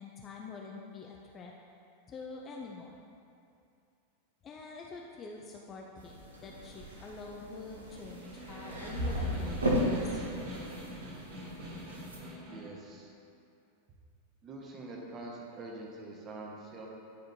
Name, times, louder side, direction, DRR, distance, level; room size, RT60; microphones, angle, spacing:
voice 1, 0.0-1.5 2.1-2.9 4.4-6.1 6.4-10.2, left 4 dB, 25° left, -1 dB, 0.5 m, -46 dB
sound 1, 6.0-12.2, equal, 75° right, 0.9 m, -35 dB
Snare drum, 7.9-12.8, equal, 50° right, 1.6 m, -44 dB
voice 2, 12.4-13.1 14.4-16.9, right 2 dB, 25° right, -2 dB, 1.2 m, -45 dB
10.0 x 5.1 x 2.8 m, 2.5 s
figure-of-eight pair, 90°, 0 cm